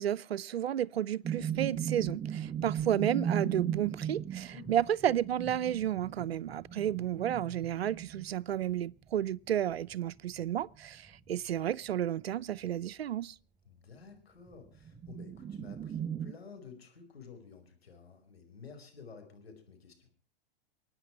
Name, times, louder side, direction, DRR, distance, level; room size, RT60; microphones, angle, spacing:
voice 1, 0.0-13.3, right 11 dB, 85° right, 0.7 m, -32 dB
sound 1, 1.2-8.7 9.1-9.3 9.7-11.3 14.5-16.3, right 8 dB, 15° right, 0.8 m, -37 dB
voice 2, 13.7-20.1, left 5 dB, 90° left, 5.2 m, -52 dB
28.5 x 9.7 x 4.6 m
hypercardioid pair, 120°, 30 cm